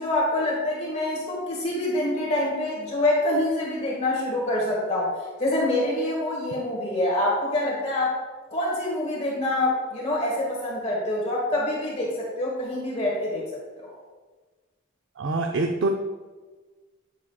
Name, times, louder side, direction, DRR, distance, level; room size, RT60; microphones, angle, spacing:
voice 1, 0.0-8.1 8.5-13.5 13.8-13.9, left 1 dB, 35° left, -4 dB, 1.7 m, -26 dB
voice 2, 15.2-15.9, right 3 dB, 70° right, 4 dB, 0.5 m, -25 dB
9.6 x 7.3 x 2.3 m, 1.3 s
head